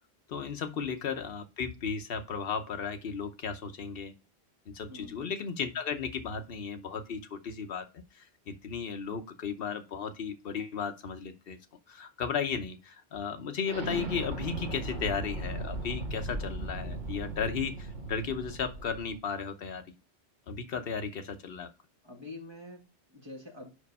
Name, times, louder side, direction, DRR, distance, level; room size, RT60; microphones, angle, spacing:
voice 1, 0.3-4.1 4.7-11.6 11.9-19.9 20.5-21.7, left 6 dB, 60° left, 7 dB, 1.0 m, -35 dB
voice 2, 4.9-5.4 22.0-23.7, left 2 dB, 25° right, -1 dB, 1.9 m, -46 dB
Explosion, 13.6-19.2, right 2 dB, 45° right, 1.4 m, -37 dB
5.3 x 4.9 x 5.4 m, 0.31 s
omnidirectional pair, 1.1 m